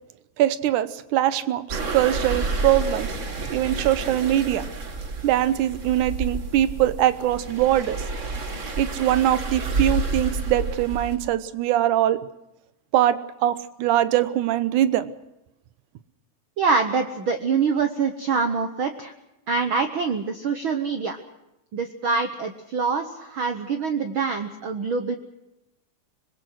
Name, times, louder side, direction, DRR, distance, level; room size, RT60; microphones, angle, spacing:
voice 1, 0.4-3.1 3.5-4.7 5.2-8.0 8.8-12.2 12.9-15.1, right 12 dB, 80° right, 14 dB, 2.4 m, -22 dB
sound 1, 1.7-11.2, right 3 dB, 35° right, 1.4 m, -30 dB
voice 2, 16.6-19.1 19.5-21.2 21.7-25.2, right 5 dB, 60° right, 6 dB, 1.4 m, -25 dB
24.5 x 21.5 x 6.4 m, 0.91 s
omnidirectional pair, 3.5 m